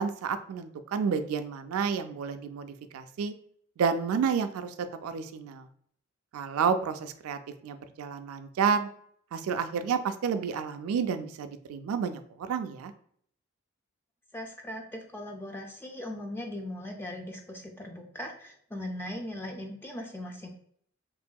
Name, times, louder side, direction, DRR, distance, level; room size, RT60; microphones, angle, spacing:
voice 1, 0.0-3.3 3.8-5.7 6.3-8.9 9.3-12.9, right 6 dB, 85° right, 10 dB, 0.3 m, -30 dB
voice 2, 14.3-20.5, left 1 dB, 10° left, 1 dB, 0.4 m, -39 dB
3.0 x 2.6 x 2.2 m, 0.63 s
head